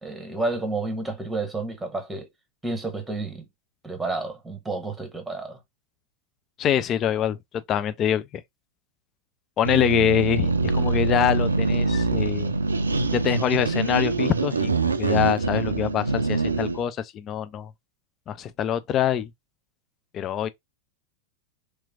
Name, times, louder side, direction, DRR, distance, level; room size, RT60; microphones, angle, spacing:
voice 1, 0.0-2.3 2.6-3.5 3.8-5.6, right 2 dB, 5° right, 1.1 m, -30 dB
voice 2, 6.6-8.4 9.6-12.5 13.1-17.7 18.3-19.3 20.1-20.5, left 9 dB, 30° left, 0.4 m, -25 dB
sound 1, 9.6-16.8, right 3 dB, 75° right, 0.4 m, -24 dB
3.3 x 3.0 x 2.3 m
figure-of-eight pair, 90°, 0 cm